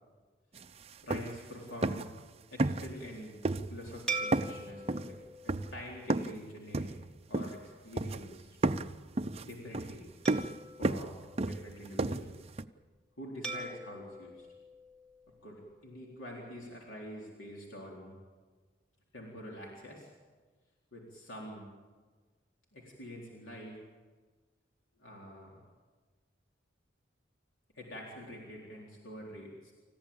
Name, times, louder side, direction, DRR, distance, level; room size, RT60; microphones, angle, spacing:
sound 1, 0.5-0.7 0.9-1.5 1.8-2.2 2.6-3.1 3.4-4.0 4.3-6.4 6.7-7.7 8.0-8.3 8.6-12.6, right 2 dB, 30° right, 0.6 m, -33 dB
voice 1, 1.0-2.1 2.5-3.4 3.7-5.2 5.4-6.9 7.3-8.6 9.4-10.1 10.8-12.4 13.2-14.5 15.4-18.1 19.1-20.1 20.9-21.7 22.7-23.8 25.0-25.6 27.7-29.7, equal, 85° left, -2 dB, 4.0 m, -46 dB
sound 2, 4.1-6.8 7.3-7.5 10.3-12.0 13.4-15.7, right 3 dB, 5° left, 2.3 m, -43 dB
29.0 x 15.0 x 8.8 m, 1.4 s
head